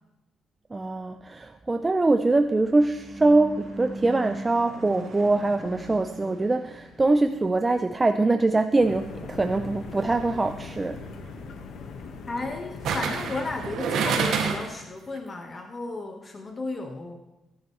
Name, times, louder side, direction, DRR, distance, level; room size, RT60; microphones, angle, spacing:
voice 1, 0.7-11.0, right 2 dB, 20° right, 8 dB, 0.6 m, -23 dB
Car passing by / Truck / Engine, 1.9-10.3, equal, 40° right, 5.2 m, -43 dB
sound 1, 8.8-13.8, left 4 dB, 70° left, 1.5 m, -40 dB
sound 2, 10.2-10.5 12.8-14.8 15.2-15.3, right 5 dB, 75° right, 2.2 m, -27 dB
voice 2, 12.3-17.2, left 2 dB, 35° left, 3 dB, 1.5 m, -34 dB
17.5 x 11.0 x 3.2 m, 0.98 s
cardioid pair, 90°, 0 cm